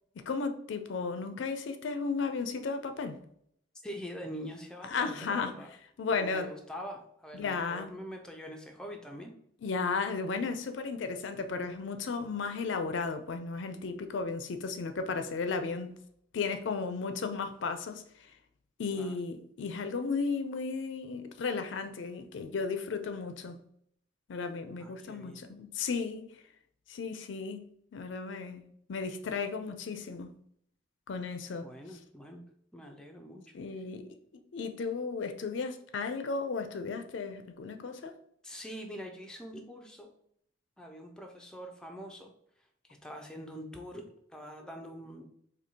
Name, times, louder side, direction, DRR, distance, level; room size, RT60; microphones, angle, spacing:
voice 1, 0.2-3.2 4.9-5.5 6.0-6.5 7.3-7.9 9.6-15.9 16.3-18.3 18.8-23.6 24.3-26.3 26.9-27.7 27.9-28.6 28.9-30.3 31.1-31.7 33.5-34.2 34.5-38.1, left 4 dB, 75° left, 0.4 m, -34 dB
voice 2, 3.8-5.7 6.1-9.4 18.9-19.2 24.8-25.5 31.6-32.4 32.7-33.5 38.4-40.1 40.8-42.3 42.8-45.3, equal, 5° left, 0.4 m, -44 dB
4.3 x 2.7 x 2.7 m
head